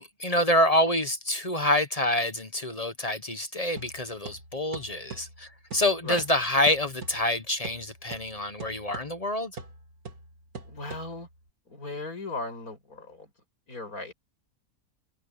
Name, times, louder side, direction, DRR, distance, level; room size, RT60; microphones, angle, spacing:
voice 1, 0.0-9.5, left 1 dB, 30° left, 1.0 m, -27 dB
sound 1, 3.8-11.5, right 4 dB, 80° right, 2.8 m, -45 dB
voice 2, 10.6-11.3 11.7-13.3 13.7-14.1, left 2 dB, 75° left, 7.6 m, -36 dB
omnidirectional pair, 1.5 m